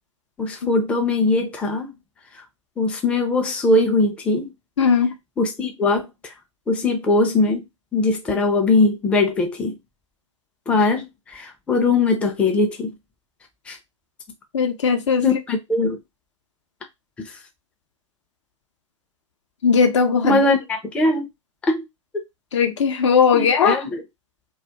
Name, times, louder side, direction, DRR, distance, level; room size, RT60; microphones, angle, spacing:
voice 1, 0.4-1.9 2.8-4.5 5.4-6.3 6.7-7.6 7.9-9.8 10.7-12.9 13.7-13.8 15.2-16.0 17.2-17.4 20.2-21.2 21.7-21.8 22.1-22.2 23.3-24.0, left 2 dB, 5° left, 0.4 m, -21 dB
voice 2, 4.8-5.1 14.5-15.2 19.6-20.4 22.5-23.8, left 6 dB, 65° left, 0.6 m, -18 dB
2.3 x 2.1 x 2.7 m
figure-of-eight pair, 105°, 17 cm